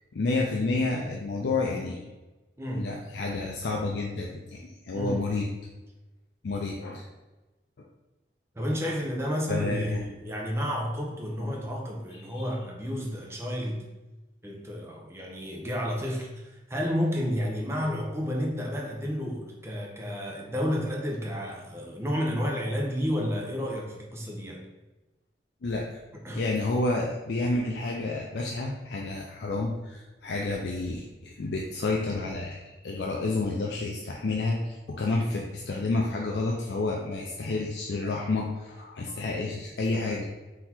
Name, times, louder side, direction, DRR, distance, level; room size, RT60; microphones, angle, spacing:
voice 1, 0.1-2.0 2.8-5.5 6.4-7.1 8.6-9.0 9.5-10.1 11.5-11.6 12.3-12.5 25.6-26.0 26.3-40.3, left 3 dB, 70° left, -1 dB, 0.4 m, -30 dB
voice 2, 2.6-3.0 4.9-5.3 8.5-13.8 14.4-24.7 26.2-26.5, equal, 15° right, -1 dB, 0.7 m, -31 dB
3.9 x 2.7 x 4.3 m, 1.1 s
head